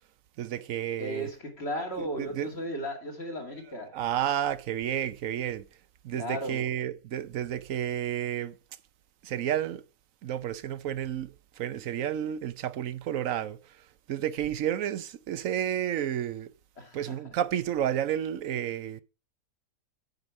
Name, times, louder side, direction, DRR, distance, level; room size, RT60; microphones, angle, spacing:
voice 1, 0.4-1.3 1.9-2.6 3.5-5.7 6.0-8.6 9.2-9.9 10.2-16.5 16.9-19.0, right 10 dB, 70° right, 1.0 m, -31 dB
voice 2, 1.0-4.0 6.1-6.7 16.8-17.0, equal, 45° left, 2.5 m, -35 dB
9.8 x 5.1 x 6.0 m
omnidirectional pair, 1.5 m